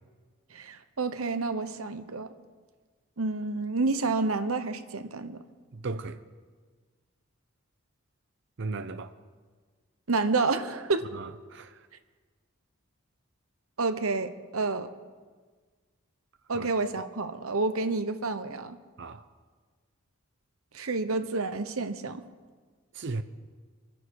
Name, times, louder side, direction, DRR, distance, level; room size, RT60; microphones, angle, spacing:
voice 1, 0.5-2.3 3.2-5.4 10.1-11.1 13.8-14.9 16.5-18.8 20.7-22.2, right 3 dB, 85° right, 1.0 m, -29 dB
voice 2, 5.7-6.2 8.6-9.1 11.1-11.8 16.5-16.7 19.0-19.2 22.9-23.2, right 3 dB, 55° right, 0.7 m, -36 dB
25.5 x 10.5 x 4.9 m
head